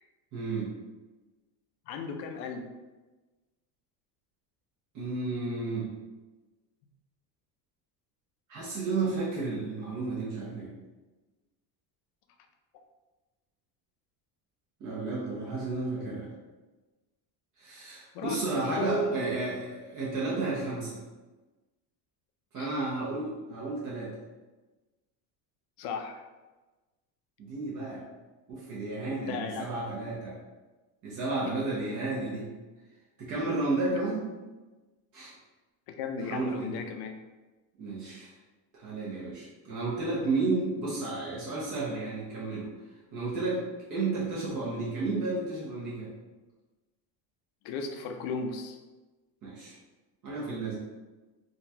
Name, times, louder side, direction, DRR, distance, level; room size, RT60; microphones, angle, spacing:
voice 1, 0.3-0.7 4.9-5.9 8.5-10.7 14.8-16.3 17.6-21.0 22.5-24.1 27.4-28.0 28.5-30.3 31.0-32.5 33.2-34.3 35.1-35.3 36.2-36.7 37.8-38.3 38.7-42.7 43.1-43.6 43.9-46.1 49.4-49.7 50.2-50.8, right 3 dB, 45° right, -6 dB, 0.9 m, -32 dB
voice 2, 1.9-2.7 18.1-19.3 22.6-22.7 25.8-26.2 29.1-29.7 31.4-31.5 35.9-37.2 47.6-48.8, left 3 dB, 65° left, 5 dB, 0.6 m, -35 dB
3.7 x 2.4 x 2.7 m, 1.2 s
cardioid pair, 160°, 43 cm